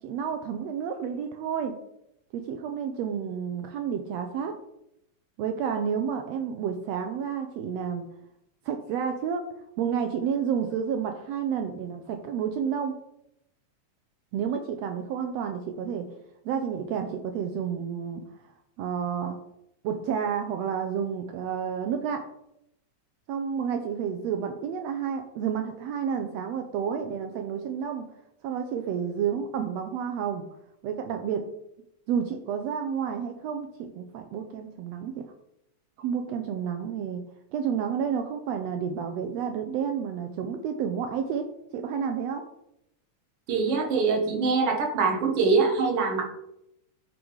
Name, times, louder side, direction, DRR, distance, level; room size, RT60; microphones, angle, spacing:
voice 1, 0.0-1.7 2.3-4.6 5.4-8.1 8.6-9.5 9.8-12.9 14.3-16.0 16.4-18.5 18.8-19.4 19.8-22.2 23.3-28.1 28.4-30.4 30.8-31.4 32.1-35.2 36.0-37.2 37.5-41.5 41.7-42.4, right 7 dB, 80° right, 6 dB, 1.6 m, -30 dB
voice 2, 43.5-46.3, right 4 dB, 55° right, 2 dB, 2.2 m, -24 dB
11.0 x 3.8 x 4.7 m, 0.81 s
omnidirectional pair, 3.4 m